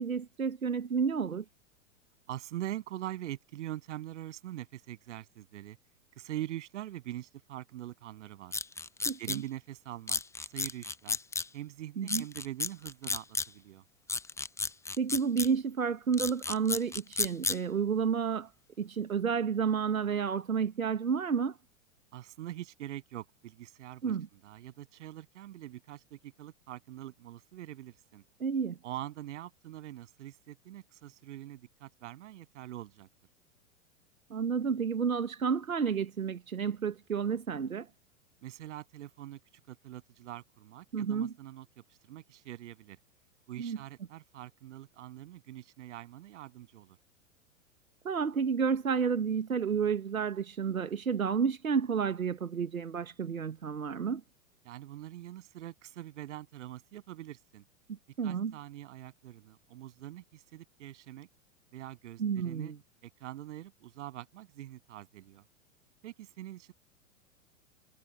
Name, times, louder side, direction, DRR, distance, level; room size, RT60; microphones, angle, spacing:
voice 1, 0.0-1.4 9.0-9.2 12.0-12.2 15.0-18.5 18.8-21.5 24.0-24.3 28.4-28.8 34.3-37.9 40.9-41.3 43.6-43.8 48.0-54.2 58.2-58.5 62.2-62.8, right 6 dB, 85° right, 1.5 m, -30 dB
voice 2, 2.3-5.8 6.2-8.6 9.2-11.2 11.5-13.8 22.1-28.2 28.8-33.1 38.4-39.4 39.7-43.0 43.5-47.0 54.6-57.6 58.2-61.3 61.7-62.7 63.0-65.4 66.0-66.7, right 13 dB, 60° right, 8.0 m, -44 dB
sound 1, 8.5-9.4 10.1-11.5 12.1-13.5 14.1-15.5 16.1-17.6, left 4 dB, 5° left, 1.0 m, -32 dB
figure-of-eight pair, 100°, 41 cm